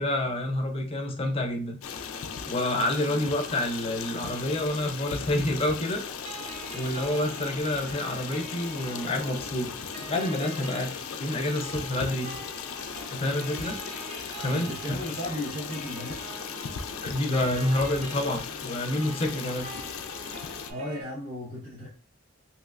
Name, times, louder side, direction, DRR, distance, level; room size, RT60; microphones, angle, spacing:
voice 1, 0.0-1.8 2.5-6.0 6.7-9.7 10.1-10.9 11.2-12.3 13.1-13.8 14.4-15.0 17.0-19.7, left 1 dB, 30° left, 4 dB, 0.5 m, -28 dB
Stream, 1.8-20.7, left 6 dB, 90° left, 0.4 m, -37 dB
sound 1, 6.3-21.0, right 2 dB, 30° right, 0.5 m, -44 dB
voice 2, 14.5-16.2 20.7-21.9, left 1 dB, 85° right, -6 dB, 1.1 m, -35 dB
3.1 x 2.9 x 2.4 m, 0.38 s
head